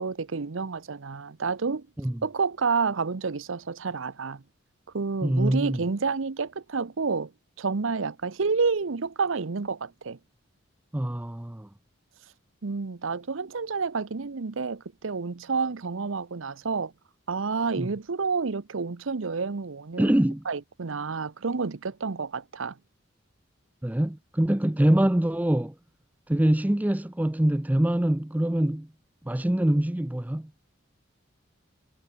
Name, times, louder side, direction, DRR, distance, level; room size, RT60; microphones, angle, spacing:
voice 1, 0.0-1.9 2.2-4.4 4.9-7.3 7.6-10.2 12.6-16.9 17.3-20.1 20.5-22.8, right 4 dB, 80° right, 0.8 m, -29 dB
voice 2, 5.2-5.8 10.9-11.7 17.8-17.9 20.0-20.4 23.8-25.7 26.3-28.9 29.2-30.5, right 1 dB, 10° right, 0.4 m, -24 dB
head